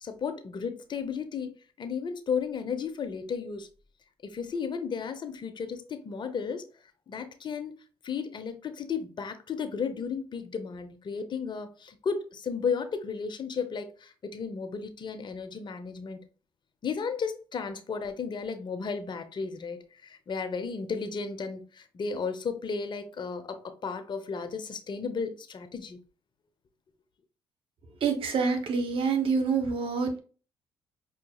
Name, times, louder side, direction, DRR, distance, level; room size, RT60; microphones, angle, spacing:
voice 1, 0.0-3.7 4.2-6.6 7.1-7.7 8.0-16.2 16.8-26.0, left 5 dB, 50° left, 0.8 m, -34 dB
voice 2, 28.0-30.2, right 5 dB, 65° right, 1.1 m, -27 dB
5.7 x 2.6 x 2.3 m
supercardioid pair, 60°, 10 cm